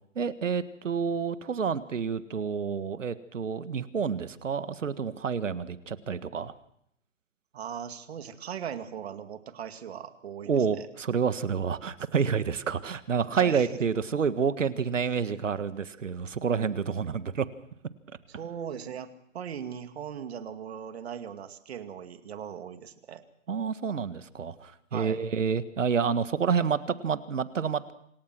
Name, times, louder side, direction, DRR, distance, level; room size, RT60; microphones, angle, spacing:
voice 1, 0.2-6.5 10.5-17.5 23.5-27.9, right 6 dB, 75° right, 12 dB, 1.8 m, -29 dB
voice 2, 7.5-10.9 13.4-13.7 18.4-23.2 24.9-25.2, right 8 dB, 55° right, 8 dB, 2.4 m, -39 dB
27.0 x 17.5 x 6.1 m, 0.72 s
hypercardioid pair, 140°, 37 cm